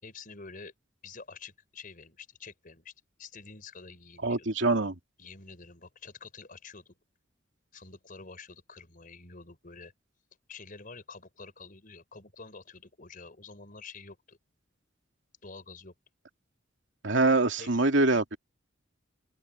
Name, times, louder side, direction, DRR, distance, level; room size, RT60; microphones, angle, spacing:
voice 1, 0.0-0.7 1.0-2.9 3.2-4.5 5.2-6.9 7.7-9.9 10.5-14.4 15.4-15.9 17.6-17.7, left 4 dB, 45° left, 5.0 m, -48 dB
voice 2, 4.2-5.0 17.0-18.4, right 2 dB, 75° right, 2.6 m, -24 dB
open air
head